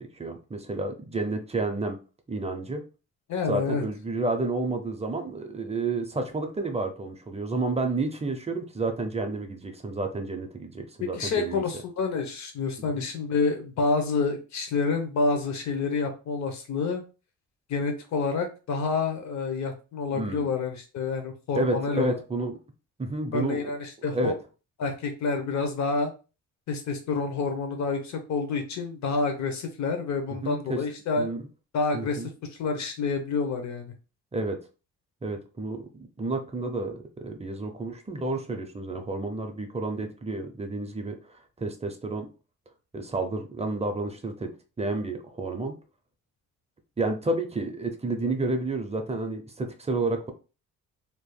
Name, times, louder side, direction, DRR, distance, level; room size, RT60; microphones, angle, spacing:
voice 1, 0.2-2.0 2.3-2.8 3.5-11.6 13.0-13.1 20.1-20.5 21.5-22.6 23.0-23.7 24.1-24.3 30.4-30.8 31.2-31.4 31.9-32.3 34.3-34.6 35.2-42.3 42.9-44.5 44.8-45.7 47.0-50.3, right 2 dB, 20° right, 5 dB, 0.6 m, -30 dB
voice 2, 3.3-3.8 11.0-17.0 17.7-22.2 23.3-24.3 24.8-26.1 26.7-31.3 31.7-32.3 32.6-33.9, left 4 dB, 65° left, 5 dB, 0.9 m, -28 dB
3.4 x 2.9 x 2.3 m, 0.33 s
cardioid pair, 90°, 30 cm